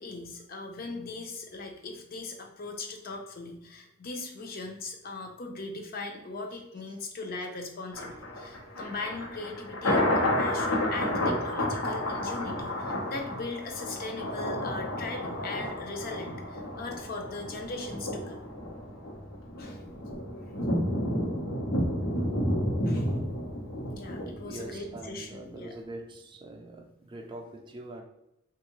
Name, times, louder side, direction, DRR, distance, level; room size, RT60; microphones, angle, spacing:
voice 1, 0.0-18.4 19.6-19.8 22.9-23.1 23.9-25.7, left 3 dB, 45° left, 3 dB, 0.5 m, -39 dB
Thunder, 7.9-25.0 25.4-25.5, left 1 dB, 85° left, 0.9 m, -31 dB
voice 2, 24.4-28.0, right 1 dB, 25° right, 2 dB, 0.4 m, -43 dB
3.5 x 2.4 x 3.0 m, 0.85 s
head